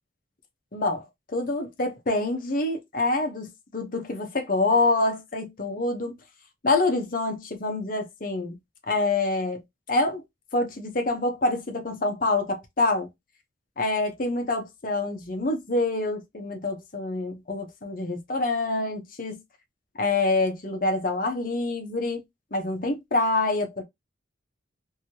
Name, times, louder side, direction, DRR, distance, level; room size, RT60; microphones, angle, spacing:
voice 1, 0.7-1.1 1.3-6.2 6.6-8.5 8.9-9.6 9.9-10.2 10.5-13.1 13.8-19.4 20.0-22.2 22.5-23.8, left 2 dB, 45° left, 0.8 m, -26 dB
3.0 x 2.7 x 2.7 m
head